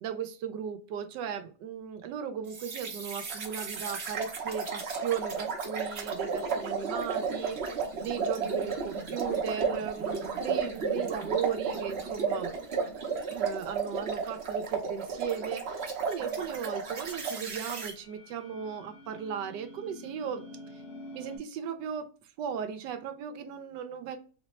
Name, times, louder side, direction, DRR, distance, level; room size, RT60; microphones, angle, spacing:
voice 1, 0.0-12.5 13.3-20.4 21.1-22.1 22.4-24.2, right 8 dB, 85° right, 7 dB, 1.2 m, -37 dB
sound 1, 2.5-17.9, right 5 dB, 50° right, 0.9 m, -33 dB
sound 2, 16.2-21.4, left 1 dB, 65° left, 1.8 m, -49 dB
3.9 x 2.1 x 4.1 m, 0.37 s
omnidirectional pair, 1.8 m